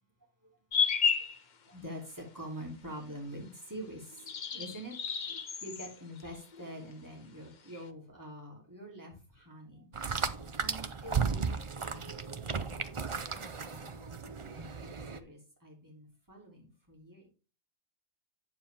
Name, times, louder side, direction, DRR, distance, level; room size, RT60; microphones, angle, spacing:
sound 1, 0.7-1.4 4.1-5.9 6.2-6.8 7.7-7.8, left 6 dB, 45° left, 0.8 m, -31 dB
voice 1, 1.7-4.2 4.5-4.9 5.6-9.9 10.6-13.1 13.3-17.3, equal, 15° right, -1 dB, 3.0 m, -46 dB
sound 2, 9.9-15.2, right 5 dB, 35° right, 0.6 m, -35 dB
9.0 x 7.4 x 3.4 m, 0.33 s
omnidirectional pair, 1.2 m